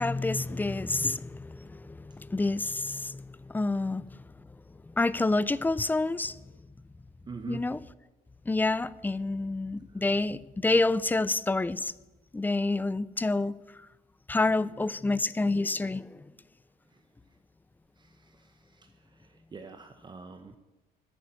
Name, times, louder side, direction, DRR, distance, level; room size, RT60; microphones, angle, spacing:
voice 1, 0.0-4.1 5.0-6.3 7.5-7.8 8.5-11.9 12.3-13.5 14.3-16.1, left 2 dB, 10° left, 18 dB, 0.4 m, -28 dB
voice 2, 7.2-7.7 9.9-10.1 16.9-17.0 18.0-20.6, right 4 dB, 25° right, 7 dB, 0.9 m, -45 dB
11.0 x 9.3 x 8.8 m, 1.1 s
cardioid pair, 110°, 17 cm